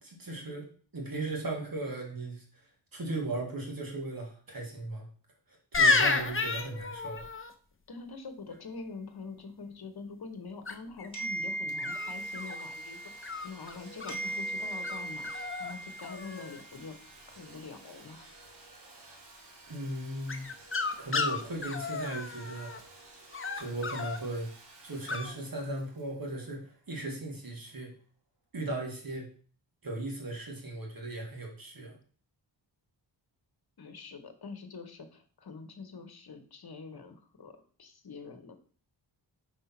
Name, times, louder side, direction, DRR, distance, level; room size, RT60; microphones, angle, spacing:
voice 1, 0.0-2.6 2.9-5.1 5.5-7.3 19.7-20.5 21.0-22.7 23.5-24.5 24.8-27.9 28.5-29.3 29.8-32.0, right 2 dB, 45° right, 0 dB, 2.0 m, -37 dB
sound 1, 5.7-7.5 10.7-11.1 11.8-12.6 13.2-14.2 14.8-15.0 15.2-15.7 16.0-16.6 20.3-22.8 23.3-24.2 25.1-25.3, left 4 dB, 25° left, 0.7 m, -31 dB
voice 2, 7.9-13.1 13.4-17.0 17.3-18.3 33.8-38.6, left 4 dB, 55° left, 7 dB, 1.3 m, -45 dB
sound 2, 11.1-13.7 14.1-16.6, right 2 dB, 10° left, 3.8 m, -38 dB
Domestic sounds home sounds, 11.7-27.2, right 2 dB, 65° right, 2.1 m, -53 dB
5.5 x 5.0 x 5.9 m, 0.43 s
wide cardioid pair, 130°, 46 cm